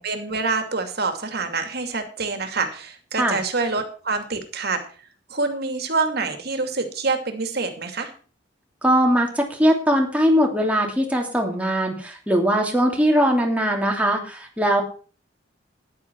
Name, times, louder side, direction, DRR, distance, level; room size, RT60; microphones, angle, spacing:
voice 1, 0.0-4.8 5.3-8.1, right 4 dB, 60° right, 6 dB, 2.5 m, -26 dB
voice 2, 8.8-14.8, equal, 10° right, 1 dB, 3.0 m, -20 dB
14.0 x 10.5 x 4.6 m, 0.38 s
head